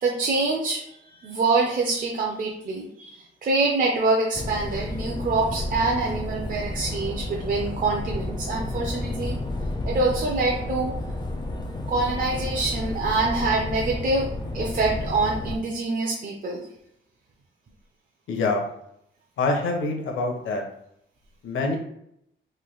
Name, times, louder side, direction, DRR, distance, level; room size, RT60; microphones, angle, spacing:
voice 1, 0.0-9.4 9.8-10.9 11.9-14.3 14.5-16.7, right 3 dB, 40° right, -2 dB, 0.5 m, -25 dB
sound 1, 4.3-15.6, left 2 dB, 20° left, 0.4 m, -31 dB
voice 2, 18.3-18.6 19.4-20.6 21.4-21.8, left 3 dB, 70° left, 2 dB, 0.7 m, -25 dB
3.2 x 2.5 x 3.9 m, 0.75 s
wide cardioid pair, 140°, 21 cm